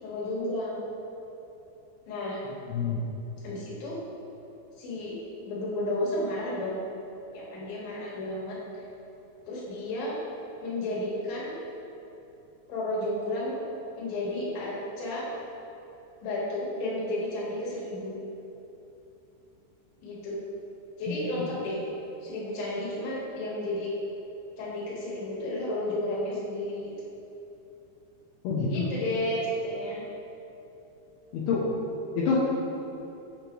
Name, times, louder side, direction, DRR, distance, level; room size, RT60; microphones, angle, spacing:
voice 1, 0.0-0.8 2.1-2.4 3.4-4.0 4.8-5.2 5.4-6.8 7.3-8.6 9.5-10.2 10.6-11.6 12.7-13.6 14.0-15.3 16.2-18.2 20.0-20.4 21.0-21.8 22.2-23.9 24.6-27.1 28.7-30.0, left 1 dB, 60° left, -7 dB, 2.8 m, -32 dB
voice 2, 28.4-28.9 31.3-31.6 32.2-32.4, left 6 dB, 80° left, -5 dB, 2.3 m, -27 dB
7.4 x 6.7 x 3.0 m, 2.9 s
omnidirectional pair, 5.5 m